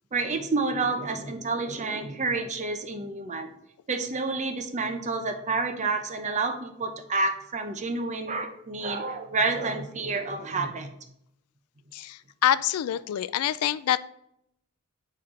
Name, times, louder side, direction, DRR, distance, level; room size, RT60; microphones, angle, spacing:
voice 1, 0.1-3.5 3.9-10.9, right 3 dB, 35° right, 6 dB, 0.7 m, -29 dB
voice 2, 12.4-14.0, left 11 dB, 85° left, 17 dB, 0.3 m, -25 dB
8.6 x 4.3 x 3.7 m, 0.76 s
head